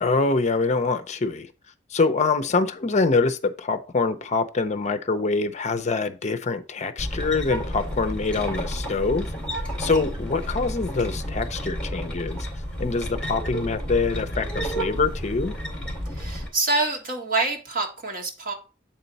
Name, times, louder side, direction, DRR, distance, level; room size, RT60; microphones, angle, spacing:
voice 1, 0.0-1.5 1.9-9.3 9.8-12.5 12.8-15.6, left 4 dB, 40° left, 0.5 m, -24 dB
sound 1, 7.0-16.5, equal, 5° left, 2.3 m, -31 dB
voice 2, 16.1-18.5, right 3 dB, 50° right, 1.6 m, -26 dB
7.7 x 4.4 x 4.0 m
head